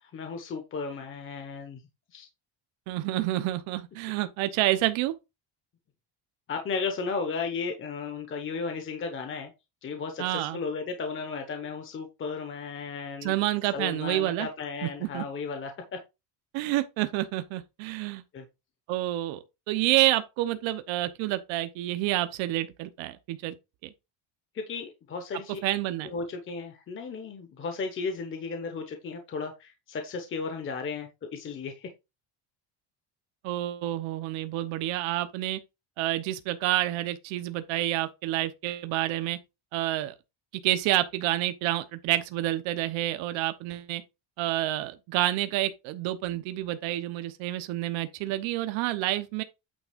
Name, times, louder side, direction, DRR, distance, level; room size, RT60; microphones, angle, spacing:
voice 1, 0.0-1.8 2.1-2.3 6.5-9.5 9.8-13.4 13.7-15.7 18.3-18.4 24.5-25.6 26.0-31.9, left 4 dB, 25° left, 1.0 m, -34 dB
voice 2, 2.9-5.1 10.2-10.6 13.2-14.5 14.8-15.2 16.5-18.2 18.9-23.6 23.8-23.9 25.6-26.1 33.4-35.6 36.0-39.4 39.7-40.1 40.6-44.0 44.4-49.4, right 15 dB, 70° right, 1.0 m, -28 dB
8.9 x 3.5 x 5.1 m
cardioid pair, 180°, 48 cm